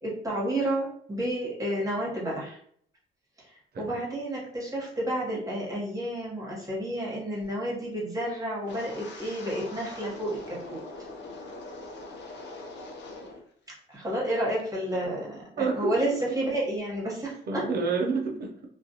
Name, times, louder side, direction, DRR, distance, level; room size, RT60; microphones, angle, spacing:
voice 1, 0.0-2.6 3.8-10.8 13.9-17.7, right 1 dB, 15° right, -5 dB, 1.1 m, -30 dB
Wind, 8.6-13.5 13.7-14.2 14.6-14.9, left 2 dB, 65° left, 0.6 m, -42 dB
voice 2, 15.6-16.2 17.5-18.7, right 4 dB, 50° right, 2 dB, 0.6 m, -29 dB
2.4 x 2.2 x 2.8 m, 0.62 s
cardioid pair, 90°, 20 cm